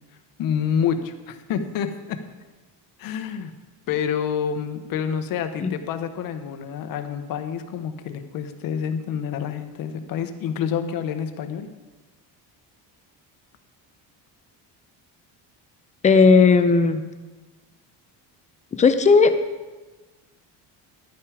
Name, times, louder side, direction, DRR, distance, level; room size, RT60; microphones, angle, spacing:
voice 1, 0.4-2.2 3.0-3.5 3.9-11.7, left 7 dB, 55° left, 8 dB, 1.0 m, -28 dB
voice 2, 16.0-17.0 18.7-19.3, left 4 dB, 20° left, 9 dB, 0.5 m, -15 dB
11.5 x 9.0 x 4.9 m, 1.2 s
cardioid pair, 170°, 42 cm